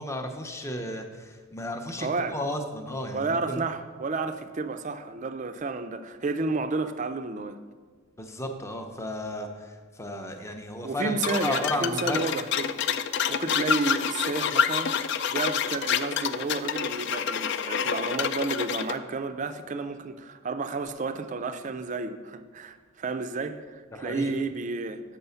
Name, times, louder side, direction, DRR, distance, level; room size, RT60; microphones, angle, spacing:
voice 1, 0.0-2.1 2.3-3.6 8.2-12.2 23.9-24.3, left 1 dB, 15° left, 0.6 m, -34 dB
voice 2, 2.0-2.4 3.1-7.6 10.8-12.8 13.3-15.0 15.3-25.0, right 3 dB, 35° right, 0.4 m, -31 dB
sound 1, 11.2-19.0, left 7 dB, 55° left, 0.3 m, -28 dB
6.4 x 5.4 x 6.9 m
head